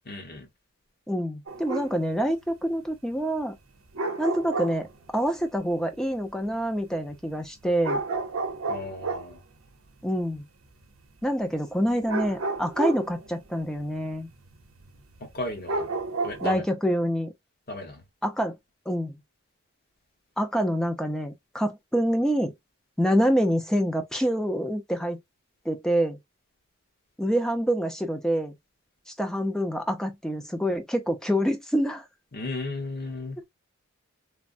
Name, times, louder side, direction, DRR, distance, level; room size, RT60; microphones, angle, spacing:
voice 1, 0.0-0.5 8.7-9.4 15.2-15.9 16.2-16.6 17.7-18.0 32.3-33.4, left 2 dB, 45° left, 1.1 m, -35 dB
voice 2, 1.1-3.5 4.2-8.0 10.0-10.4 11.2-14.3 16.4-17.3 18.2-18.5 18.9-19.2 20.4-22.5 23.0-25.2 25.7-26.2 27.2-28.5 29.2-32.0 33.4-33.5, equal, 5° left, 0.4 m, -26 dB
sound 1, 1.5-1.9 3.9-4.9 7.1-7.2 7.8-9.4 12.1-13.8 14.2-14.6 14.9-15.0 15.6-16.6, right 3 dB, 75° right, 0.7 m, -30 dB
3.3 x 2.0 x 2.5 m
head